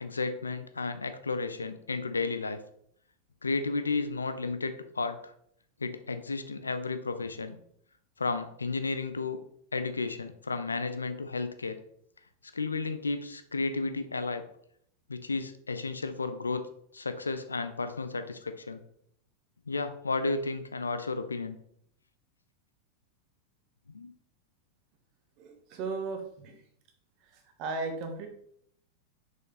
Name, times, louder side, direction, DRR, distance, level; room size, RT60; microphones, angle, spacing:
voice 1, 0.0-2.6 3.4-5.3 5.8-7.6 8.2-9.4 9.7-11.8 12.5-14.4 15.1-16.6 16.9-18.8 19.7-21.6 23.9-24.1, left 3 dB, 75° left, 10 dB, 0.6 m, -33 dB
voice 2, 25.4-26.6 27.2-28.3, right 3 dB, 40° right, 4 dB, 1.6 m, -36 dB
6.5 x 5.2 x 4.0 m, 0.68 s
figure-of-eight pair, 90°, 0 cm